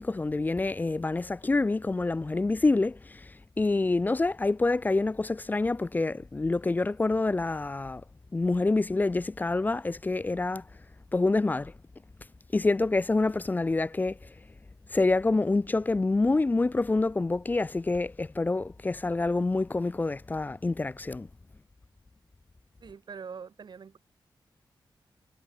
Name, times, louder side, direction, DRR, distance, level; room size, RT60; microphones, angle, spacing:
voice 1, 0.0-8.0 8.3-10.6 11.1-11.7 12.5-14.3 14.9-21.3, left 3 dB, 20° left, 0.4 m, -27 dB
voice 2, 22.8-24.0, right 6 dB, 60° right, 1.8 m, -43 dB
wide cardioid pair, 130°, 8 cm